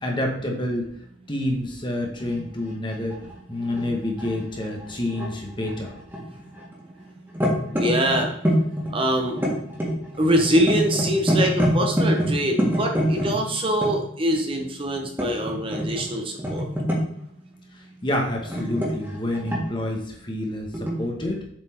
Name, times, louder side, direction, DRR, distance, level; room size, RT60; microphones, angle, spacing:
voice 1, 0.0-0.9 1.3-3.2 3.5-5.9 18.0-21.4, left 1 dB, 25° left, 1 dB, 1.3 m, -28 dB
sound 1, 2.2-2.4 2.9-5.3 5.7-6.8 7.1-13.9 15.0-16.0 16.4-17.2 18.3-19.9 20.7-20.9, equal, 10° right, 1.8 m, -25 dB
voice 2, 7.7-8.3 8.9-9.4 10.2-16.6, equal, 30° right, 2 dB, 0.9 m, -23 dB
7.5 x 4.4 x 4.4 m, 0.70 s
head